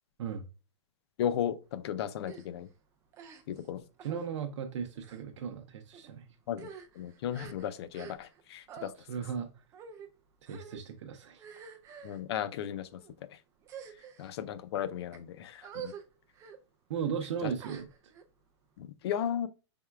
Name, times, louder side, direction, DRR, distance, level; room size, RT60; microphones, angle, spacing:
voice 1, 1.2-2.7 3.5-3.8 6.5-6.7 7.0-8.9 12.0-13.0 14.2-15.9 17.4-17.5 18.8-19.5, left 10 dB, 60° left, 0.4 m, -35 dB
sound 1, 2.2-2.5 3.1-3.7 4.0-4.3 5.0-5.2 5.9-6.1 6.5-8.4 8.7-8.9 9.7-10.1 10.5-10.8 11.4-12.2 12.9-13.1 13.6-14.3 14.9-15.2 15.6-16.0 16.3-16.6 17.6-18.2, right 7 dB, 20° right, 0.4 m, -47 dB
voice 2, 4.0-6.3 9.0-9.5 10.5-11.4 16.9-17.9, right 7 dB, 75° right, 0.6 m, -36 dB
5.4 x 3.5 x 2.2 m
supercardioid pair, 155°, 15 cm